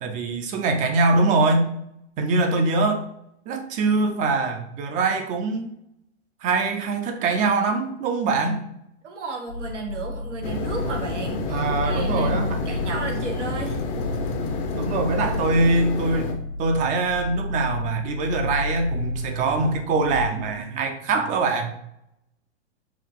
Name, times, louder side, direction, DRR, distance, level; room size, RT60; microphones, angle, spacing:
voice 1, 0.0-1.7 2.2-3.1 3.5-5.7 6.4-8.6 11.5-12.6 14.7-16.3 16.6-21.7, right 3 dB, 20° right, 6 dB, 0.4 m, -23 dB
voice 2, 9.0-12.3 12.6-13.8, right 3 dB, 85° right, 2 dB, 1.1 m, -33 dB
sound 1, 9.5-20.3, left 2 dB, 85° left, 1.6 m, -32 dB
sound 2, 10.4-16.3, left 3 dB, 35° left, 0.6 m, -29 dB
4.8 x 2.3 x 3.5 m, 0.77 s
hypercardioid pair, 125°, 35 cm